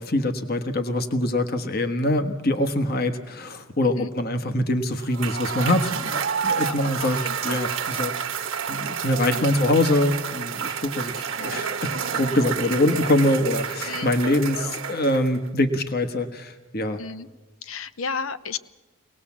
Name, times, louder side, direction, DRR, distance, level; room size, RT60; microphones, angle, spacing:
voice 1, 0.0-8.1 8.7-17.0, left 1 dB, 45° left, 7 dB, 1.3 m, -24 dB
Cheering / Applause / Crowd, 5.0-15.5, right 7 dB, 60° right, 1.2 m, -30 dB
voice 2, 7.0-7.6 9.2-9.5 11.4-11.6 13.9-14.1 17.0-17.3 17.6-18.6, left 5 dB, 70° left, 14 dB, 0.8 m, -33 dB
23.5 x 19.0 x 7.3 m, 1.1 s
head